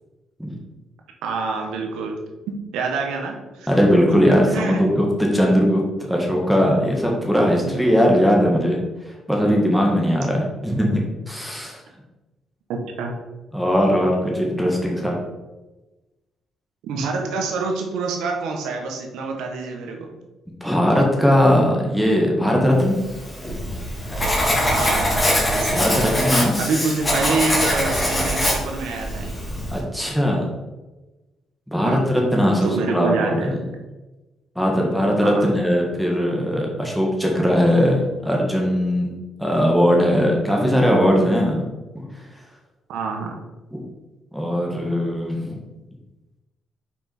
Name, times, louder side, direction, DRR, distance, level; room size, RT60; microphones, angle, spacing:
voice 1, 1.2-2.2 2.5-3.7 4.3-4.8 7.6-7.7 12.7-13.1 16.8-20.1 24.7-25.2 25.5-25.9 26.6-29.3 31.8-32.2 32.6-33.6 35.2-35.5 42.9-43.3, right 4 dB, 90° right, 2 dB, 1.3 m, -27 dB
voice 2, 3.7-8.8 9.3-11.8 13.5-15.2 20.6-23.0 25.7-26.6 29.7-30.5 31.7-32.0 32.3-33.6 34.5-39.1 39.4-41.6 44.3-45.6, equal, ahead, -1 dB, 1.5 m, -19 dB
Writing, 23.1-29.8, equal, 20° left, 2.2 m, -22 dB
6.1 x 4.7 x 4.4 m, 1.1 s
cardioid pair, 90°, 0 cm